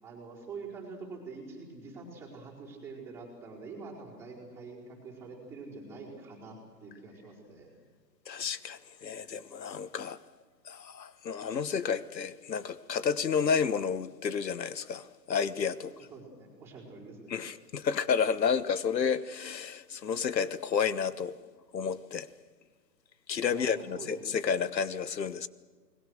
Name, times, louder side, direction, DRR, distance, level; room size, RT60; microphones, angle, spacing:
voice 1, 0.0-7.7 15.8-17.5 23.5-24.2, right 4 dB, 5° right, 4.6 m, -46 dB
voice 2, 8.3-10.2 10.6-15.9 17.3-21.3 21.7-22.3 23.3-25.5, left 6 dB, 85° left, 1.4 m, -31 dB
29.5 x 21.0 x 6.5 m
hypercardioid pair, 160°, 49 cm